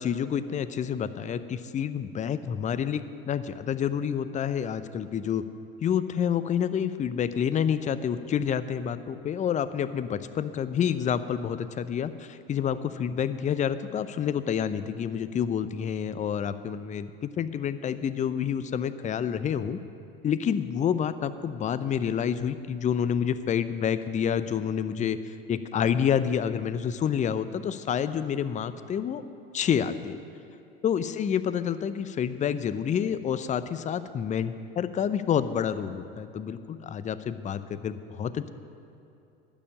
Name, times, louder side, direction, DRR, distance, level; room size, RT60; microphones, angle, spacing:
voice 1, 0.0-3.0 3.3-5.5 5.8-19.8 20.2-25.2 25.5-29.2 29.5-30.2 30.8-38.5, left 8 dB, 25° left, 13 dB, 0.6 m, -28 dB
12.0 x 7.0 x 8.6 m, 2.8 s
hypercardioid pair, 80°, 30 cm